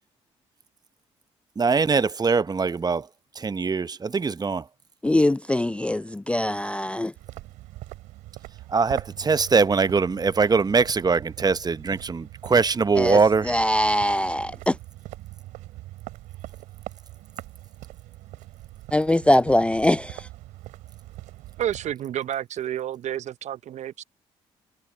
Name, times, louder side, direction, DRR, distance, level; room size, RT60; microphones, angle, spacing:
voice 1, 1.6-3.1 3.4-4.6 8.7-13.5, right 4 dB, 30° right, 0.9 m, -22 dB
voice 2, 5.0-7.1 13.0-13.2 13.5-14.7 18.9-20.2, left 1 dB, 10° left, 0.3 m, -22 dB
sound 1, 7.2-21.9, right 17 dB, 80° right, 2.9 m, -42 dB
voice 3, 21.6-24.0, right 11 dB, 60° right, 0.7 m, -30 dB
hypercardioid pair, 55°, 13 cm